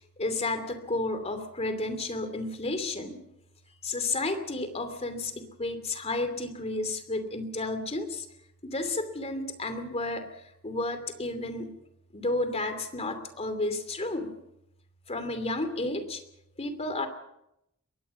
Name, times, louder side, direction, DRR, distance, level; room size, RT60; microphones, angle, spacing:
voice 1, 0.2-3.2 3.8-8.3 8.6-10.2 10.6-11.7 12.1-14.4 15.1-16.2 16.6-17.1, left 2 dB, 30° left, 9 dB, 2.8 m, -32 dB
22.0 x 17.5 x 7.1 m, 0.83 s
head